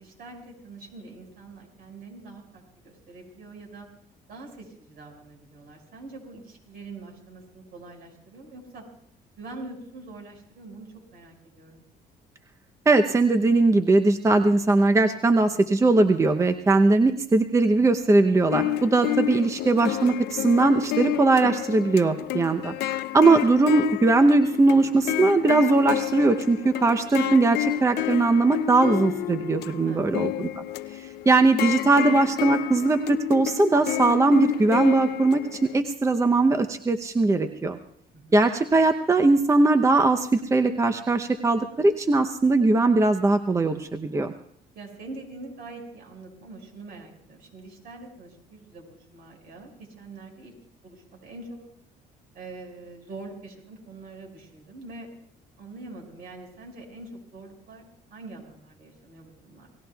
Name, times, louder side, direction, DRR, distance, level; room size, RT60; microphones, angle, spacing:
voice 1, 0.0-3.9 4.3-8.8 9.4-11.8 29.8-30.0 30.3-30.5 38.1-38.4 44.7-50.5 50.8-51.6 52.3-55.1 55.6-57.8 58.1-59.7, right 3 dB, 65° right, 1 dB, 5.4 m, -44 dB
voice 2, 12.9-22.7 23.1-30.6 31.3-37.8 38.3-44.3, right 3 dB, 15° right, 7 dB, 0.7 m, -20 dB
sound 1, 18.5-35.8, left 14 dB, 75° left, 0.5 m, -30 dB
28.5 x 17.5 x 2.3 m, 0.68 s
cardioid pair, 110°, 17 cm